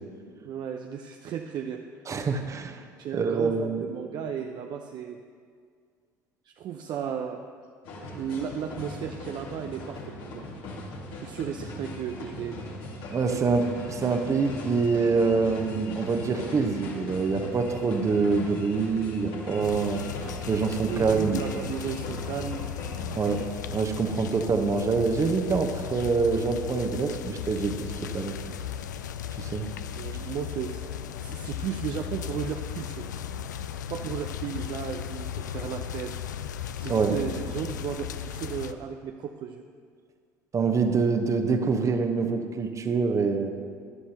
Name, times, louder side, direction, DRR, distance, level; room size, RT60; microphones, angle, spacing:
voice 1, 0.3-1.8 3.0-5.2 6.4-7.4 8.1-10.5 11.1-12.7 20.9-22.6 29.9-33.1 33.9-36.1 36.8-39.6, right 8 dB, 45° right, 4 dB, 0.6 m, -35 dB
voice 2, 2.1-2.8 3.1-3.8 13.1-20.1 20.5-21.4 23.1-28.4 29.4-29.7 36.9-37.1 40.5-43.5, right 4 dB, 30° right, 6 dB, 1.1 m, -25 dB
sound 1, 7.8-23.4, left 2 dB, 60° left, 2.0 m, -39 dB
sound 2, 19.6-38.7, left 9 dB, 80° left, 0.4 m, -36 dB
14.5 x 11.0 x 3.0 m, 2.1 s
figure-of-eight pair, 65°, 10 cm